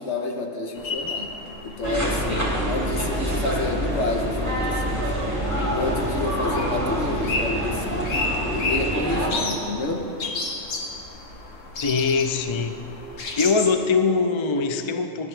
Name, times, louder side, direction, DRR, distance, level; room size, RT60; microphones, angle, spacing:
voice 1, 0.0-1.3 1.6-5.1 5.5-8.2 8.5-10.2, left 2 dB, 65° left, 3 dB, 1.3 m, -30 dB
sound 1, 0.8-13.7, left 3 dB, 85° left, 1.4 m, -33 dB
sound 2, 1.8-9.3, equal, 15° right, 2.6 m, -26 dB
voice 2, 11.8-12.8 13.4-15.3, left 4 dB, 45° left, 7 dB, 0.4 m, -22 dB
18.5 x 10.5 x 3.3 m, 2.8 s
omnidirectional pair, 1.3 m